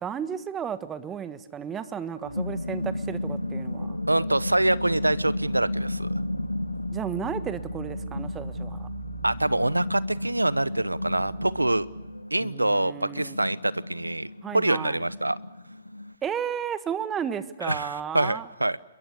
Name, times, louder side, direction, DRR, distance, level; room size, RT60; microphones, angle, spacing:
voice 1, 0.0-4.0 6.9-8.9 12.4-13.4 14.4-15.0 16.2-18.5, right 8 dB, 15° right, 12 dB, 1.5 m, -33 dB
sound 1, 1.9-16.1, left 1 dB, 90° left, 0.8 m, -34 dB
sound 2, 2.2-12.2, right 4 dB, 65° right, 3.3 m, -43 dB
voice 2, 4.1-6.1 9.2-11.9 12.3-14.3 14.5-15.4 17.6-18.8, right 1 dB, 90° right, 19 dB, 0.9 m, -25 dB
28.5 x 22.5 x 6.8 m, 0.99 s
figure-of-eight pair, 125°, 0 cm